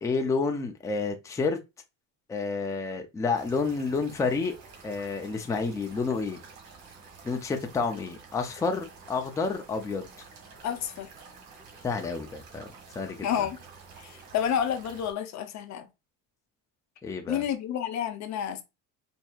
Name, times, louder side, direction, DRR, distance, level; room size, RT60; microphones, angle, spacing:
voice 1, 0.0-1.6 2.3-4.5 4.8-6.4 7.2-10.1 11.8-12.7 12.9-13.5 17.0-17.4, left 4 dB, 10° left, 0.4 m, -29 dB
sound 1, 3.3-15.1, right 4 dB, 60° right, 1.7 m, -50 dB
voice 2, 10.6-11.1 13.2-13.6 14.0-15.9 17.3-18.6, left 9 dB, 45° left, 0.6 m, -30 dB
4.4 x 2.6 x 2.3 m
cardioid pair, 135°, 39 cm